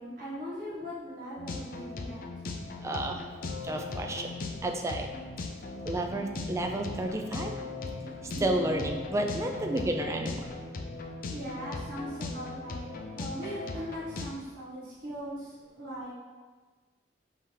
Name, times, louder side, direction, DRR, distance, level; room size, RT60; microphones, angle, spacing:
voice 1, 0.0-2.2 11.3-12.9 13.1-16.1, equal, 55° right, -10 dB, 1.1 m, -39 dB
sound 1, 1.4-14.3, left 2 dB, 50° left, 0.4 m, -39 dB
voice 2, 2.6-3.3 3.6-4.3 4.6-5.1 5.8-7.5 8.2-10.6, right 1 dB, 15° right, 3 dB, 0.3 m, -31 dB
Keyboard (musical), 3.4-5.7 7.3-11.6, left 5 dB, 85° left, 1.2 m, -45 dB
4.8 x 2.8 x 3.8 m, 1.4 s
head